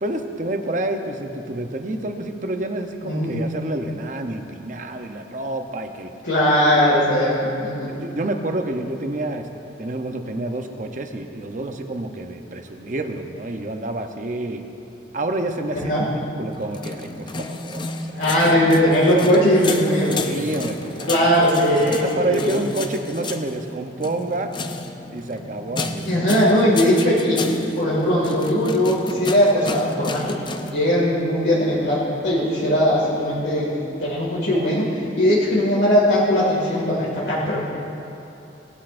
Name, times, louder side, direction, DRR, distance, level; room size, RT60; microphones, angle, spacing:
voice 1, 0.0-6.1 6.7-7.3 7.9-9.5 9.8-14.6 15.1-16.1 16.4-18.0 20.1-21.3 21.8-24.5 25.1-26.1, right 2 dB, 45° right, 5 dB, 0.8 m, -28 dB
voice 2, 3.0-3.4 6.2-7.9 15.8-16.0 18.2-20.3 21.1-22.5 26.1-27.5 27.7-37.6, equal, 70° left, -7 dB, 2.2 m, -19 dB
sound 1, 16.6-30.7, left 3 dB, 25° left, 0.5 m, -32 dB
18.0 x 12.0 x 2.6 m, 2.9 s
head